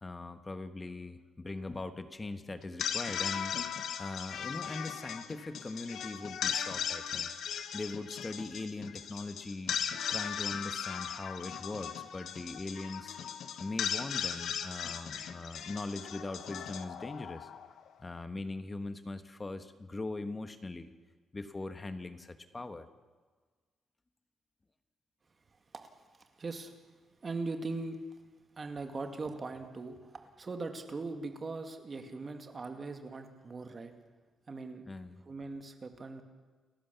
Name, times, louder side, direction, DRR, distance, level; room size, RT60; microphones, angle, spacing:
voice 1, 0.0-3.6 4.0-7.3 7.7-9.8 10.1-13.2 13.6-17.5 18.0-20.9 21.3-22.9 34.9-35.2, left 2 dB, 20° left, 9 dB, 1.3 m, -41 dB
sound 1, 2.6-17.9, left 8 dB, 75° left, 1.3 m, -38 dB
voice 2, 26.4-26.7 27.2-28.0 28.6-33.9 34.5-34.8 35.2-36.2, right 3 dB, 30° right, 5 dB, 2.2 m, -40 dB
29.5 x 15.0 x 7.0 m, 1.4 s
cardioid pair, 145°, 0 cm